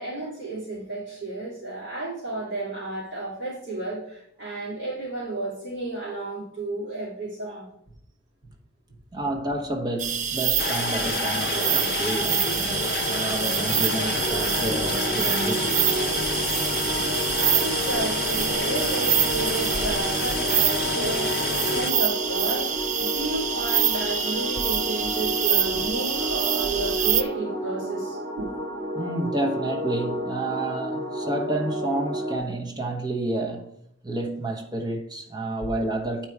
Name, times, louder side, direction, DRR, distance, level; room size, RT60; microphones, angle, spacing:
voice 1, 0.0-7.7 17.4-22.7 23.0-28.5, right 2 dB, 60° right, 2.7 m, -32 dB
voice 2, 9.1-15.7 28.9-33.7 34.0-36.3, right 2 dB, 20° right, 1.0 m, -30 dB
sound 1, 10.0-27.2, right 8 dB, 40° right, 0.4 m, -26 dB
sound 2, 10.6-21.9, left 5 dB, 50° left, 0.5 m, -30 dB
sound 3, 14.0-32.4, equal, 75° right, 1.9 m, -31 dB
8.4 x 4.5 x 4.7 m
head